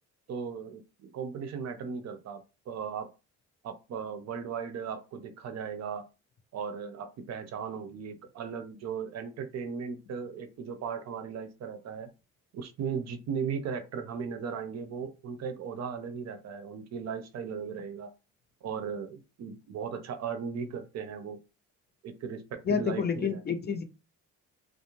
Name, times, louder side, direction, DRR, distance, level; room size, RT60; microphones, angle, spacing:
voice 1, 0.3-3.1 3.6-6.0 6.5-12.1 12.5-18.1 18.6-21.4 22.0-23.4, right 6 dB, 60° right, 8 dB, 0.6 m, -37 dB
voice 2, 22.7-23.8, left 6 dB, 35° left, 7 dB, 0.5 m, -29 dB
2.4 x 2.1 x 3.0 m, 0.30 s
cardioid pair, 90°, 30 cm